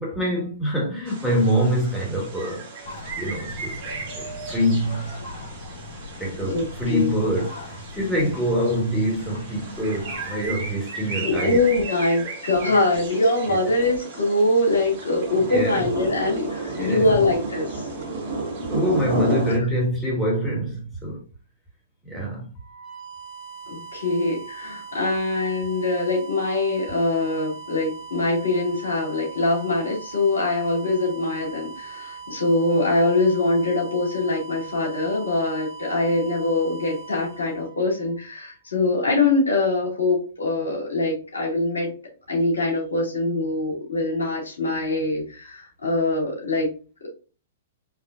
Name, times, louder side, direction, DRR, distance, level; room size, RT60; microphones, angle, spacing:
voice 1, 0.0-2.7 3.1-5.1 6.2-11.6 12.0-12.1 12.6-12.7 13.5-13.6 15.5-15.9 16.7-17.1 18.7-21.2 22.0-22.5, equal, 5° left, 2.0 m, -25 dB
sound 1, 1.1-19.6, right 3 dB, 45° right, 1.8 m, -33 dB
sound 2, 2.8-10.7, left 3 dB, 60° left, 1.8 m, -40 dB
voice 2, 6.5-7.1 11.2-17.9 23.7-41.9 42.3-46.7, left 2 dB, 80° left, 2.4 m, -23 dB
sound 3, 22.6-38.4, right 6 dB, 30° left, 0.8 m, -40 dB
4.7 x 3.2 x 2.5 m
hypercardioid pair, 115°, 0 cm